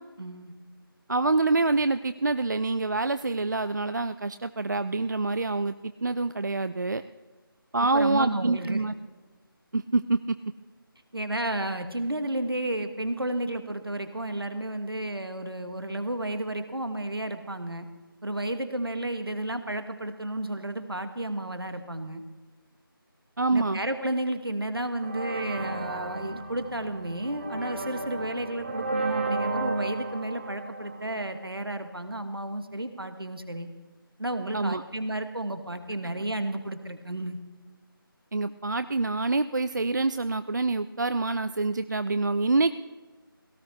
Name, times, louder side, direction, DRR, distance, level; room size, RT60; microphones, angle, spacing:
voice 1, 0.2-0.5 7.9-8.8 11.1-17.9 18.2-22.2 23.5-33.7 34.2-37.4, right 1 dB, 75° right, 8 dB, 1.6 m, -32 dB
voice 2, 1.1-7.0 7.7-8.9 9.7-10.4 23.4-23.8 34.5-34.8 38.3-42.7, right 3 dB, 50° right, 12 dB, 0.4 m, -26 dB
sound 1, 25.0-31.8, right 3 dB, 30° right, 1.0 m, -33 dB
sound 2, 25.5-29.9, left 1 dB, 60° left, 2.7 m, -47 dB
17.5 x 15.0 x 3.3 m, 1.3 s
figure-of-eight pair, 160°, 12 cm